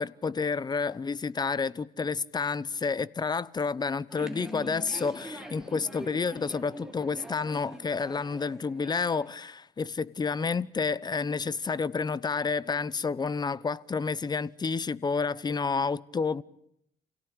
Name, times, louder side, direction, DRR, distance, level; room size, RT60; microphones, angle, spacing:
voice 1, 0.0-16.4, left 5 dB, 25° left, 0.9 m, -30 dB
sound 1, 4.1-9.3, equal, 5° right, 5.2 m, -43 dB
28.5 x 17.5 x 10.0 m
cardioid pair, 110°, 17 cm